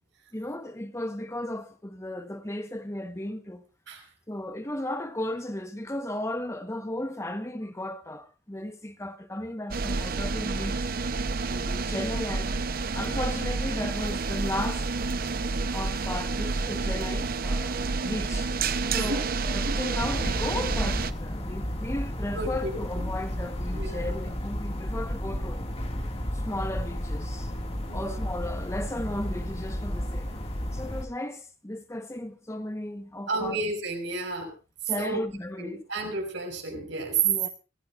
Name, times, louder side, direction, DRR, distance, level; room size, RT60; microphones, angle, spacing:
voice 1, 0.3-3.6 4.3-10.9 11.4-12.6 12.9-14.9 15.7-18.5 18.9-25.6 26.3-27.5 27.9-30.3 30.7-33.6 34.8-35.8 37.2-37.5, left 1 dB, 15° left, 1.1 m, -35 dB
sound 1, 9.7-21.1, right 3 dB, 50° right, 0.7 m, -29 dB
voice 2, 18.9-19.4 19.7-19.8 22.3-22.7 23.7-24.1 27.9-28.2 33.3-34.5 35.0-35.2 35.6-37.2, right 3 dB, 75° right, 6.1 m, -32 dB
sound 2, 20.0-31.1, equal, 35° left, 2.1 m, -32 dB
25.5 x 16.0 x 2.5 m
head